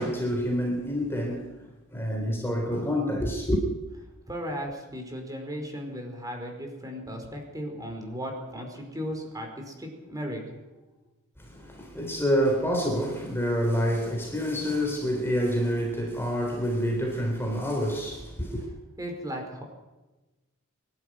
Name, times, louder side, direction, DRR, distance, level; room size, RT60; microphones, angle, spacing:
voice 1, 0.0-1.6 1.9-3.6 11.4-18.7, equal, 10° left, 3.7 m, -27 dB
voice 2, 4.3-10.4 19.0-19.6, equal, 15° right, 4.9 m, -36 dB
24.0 x 12.5 x 9.4 m
head